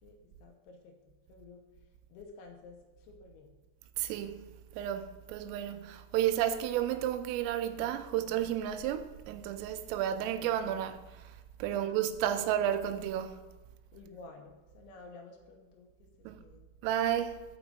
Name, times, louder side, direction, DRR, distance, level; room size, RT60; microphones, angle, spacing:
voice 1, 0.0-1.6 2.1-3.5 11.7-12.5 13.9-16.7, left 3 dB, 75° left, 3.0 m, -53 dB
voice 2, 4.0-4.4 4.8-11.0 11.6-13.4 16.3-16.4 16.8-17.4, right 11 dB, 85° right, 3.2 m, -32 dB
7.1 x 6.0 x 6.6 m
omnidirectional pair, 5.8 m